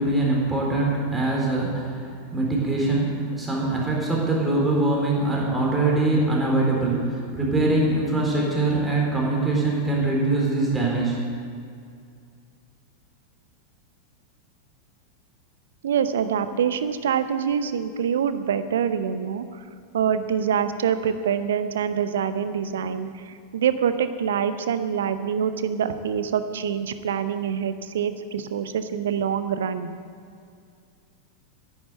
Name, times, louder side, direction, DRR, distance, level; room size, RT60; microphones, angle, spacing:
voice 1, 0.0-11.2, right 2 dB, 10° right, -3 dB, 4.0 m, -23 dB
voice 2, 15.8-19.6 19.9-29.9, right 8 dB, 60° right, 11 dB, 0.7 m, -25 dB
11.0 x 10.5 x 8.0 m, 2.3 s
figure-of-eight pair, 90°, 0 cm